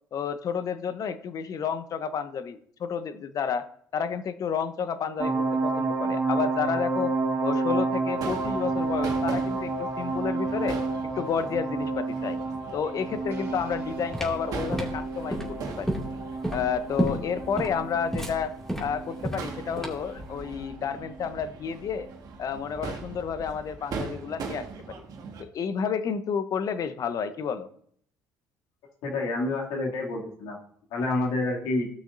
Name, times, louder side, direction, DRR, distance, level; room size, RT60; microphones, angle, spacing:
voice 1, 0.1-3.7 3.9-7.1 7.4-12.4 12.7-15.9 16.5-18.5 18.8-22.1 22.4-25.0 25.4-27.7, left 7 dB, 50° left, 12 dB, 0.9 m, -31 dB
sound 1, 5.2-20.8 21.1-21.2, right 3 dB, 35° right, 2.7 m, -30 dB
Crowd / Fireworks, 8.1-25.4, right 4 dB, 55° right, 1.7 m, -41 dB
sound 2, 13.7-20.2, right 1 dB, 5° left, 2.4 m, -31 dB
voice 2, 29.0-30.6 30.9-31.9, left 2 dB, 75° left, -2 dB, 2.6 m, -28 dB
15.5 x 6.3 x 2.7 m, 0.63 s
supercardioid pair, 70°, 8 cm